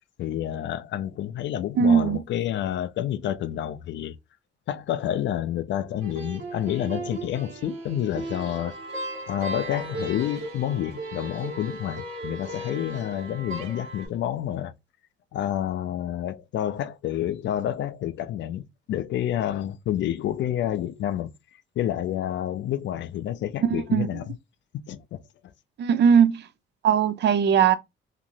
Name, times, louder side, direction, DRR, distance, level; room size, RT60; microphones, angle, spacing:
voice 1, 0.2-4.2 4.7-8.8 9.3-14.7 15.3-21.3 21.8-24.4 24.8-25.2, left 11 dB, 65° left, 0.4 m, -29 dB
voice 2, 1.8-2.2 23.9-24.1 25.8-26.4 26.8-27.8, right 7 dB, 60° right, 0.5 m, -19 dB
sound 1, 6.0-14.1, right 2 dB, 85° right, 1.6 m, -36 dB
3.0 x 2.5 x 2.7 m
cardioid pair, 90°, 20 cm